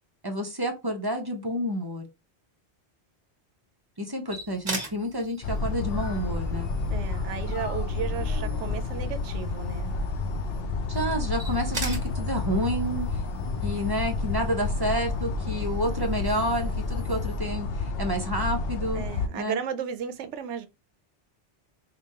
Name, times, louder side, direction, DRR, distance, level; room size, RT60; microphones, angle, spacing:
voice 1, 0.2-2.0 4.0-6.7 10.9-13.2 13.6-19.0 19.3-19.6, equal, 25° right, 0.5 m, -29 dB
sound 1, 4.3-17.4, right 2 dB, 45° right, 1.4 m, -43 dB
sound 2, 5.4-19.3, left 3 dB, 65° left, 0.7 m, -30 dB
voice 2, 6.9-9.9 18.9-20.7, right 8 dB, 85° right, 0.9 m, -34 dB
5.0 x 2.2 x 2.8 m
omnidirectional pair, 1.2 m